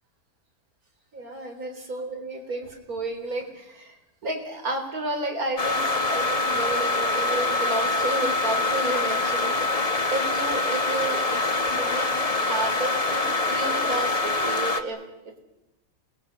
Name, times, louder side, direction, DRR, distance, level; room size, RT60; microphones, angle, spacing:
voice 1, 1.1-4.0 4.2-15.0, right 2 dB, 80° right, 3 dB, 4.4 m, -32 dB
sound 1, 5.6-14.8, left 2 dB, 30° left, 1.1 m, -25 dB
28.0 x 21.0 x 6.6 m, 0.93 s
omnidirectional pair, 1.5 m